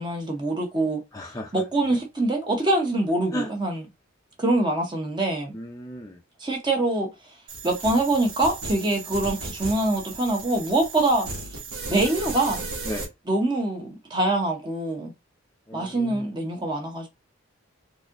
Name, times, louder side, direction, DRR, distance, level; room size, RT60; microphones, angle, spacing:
voice 1, 0.0-1.0 1.5-3.8 4.4-5.5 6.4-7.1 7.6-11.3 11.9-12.6 13.3-15.1 15.7-17.1, right 2 dB, 20° right, 0.8 m, -24 dB
voice 2, 1.1-1.6 3.3-3.5 5.5-6.2 12.9-13.1 15.7-16.3, equal, 15° left, 0.5 m, -34 dB
sound 1, 7.5-13.0, right 3 dB, 85° right, 1.6 m, -35 dB
4.1 x 2.7 x 2.5 m
head